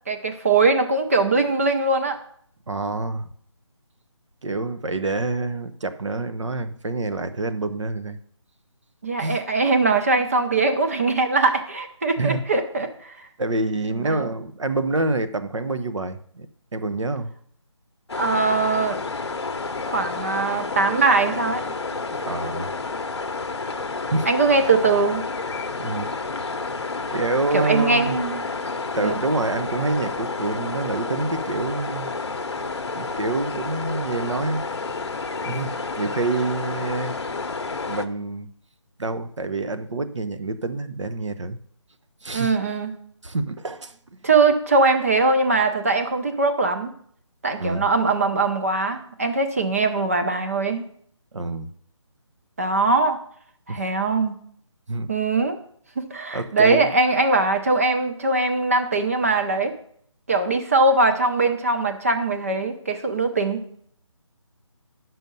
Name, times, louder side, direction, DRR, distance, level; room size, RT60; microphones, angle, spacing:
voice 1, 0.1-2.2 9.0-13.3 13.9-14.3 18.1-19.0 19.9-21.7 24.3-25.2 27.5-28.4 29.0-29.2 42.3-42.9 44.2-46.9 47.4-50.9 52.6-53.2 53.7-54.4 55.1-55.6 56.0-59.7 60.3-63.6, right 3 dB, 30° right, 6 dB, 0.9 m, -21 dB
voice 2, 2.7-3.3 4.4-8.2 9.2-9.4 12.2-12.4 13.4-16.5 16.7-17.3 22.3-22.7 24.1-24.3 25.8-26.1 27.1-28.2 28.6-32.1 32.9-34.6 35.4-37.1 37.9-38.5 39.0-41.6 42.2-42.5 43.2-44.0 47.6-47.8 51.3-51.7 53.7-53.8 54.9-55.1 56.3-56.9, right 2 dB, 70° right, 11 dB, 1.1 m, -27 dB
sound 1, 18.1-38.1, left 3 dB, 55° left, 0.8 m, -30 dB
10.5 x 6.2 x 5.4 m, 0.63 s
figure-of-eight pair, 175°, 16 cm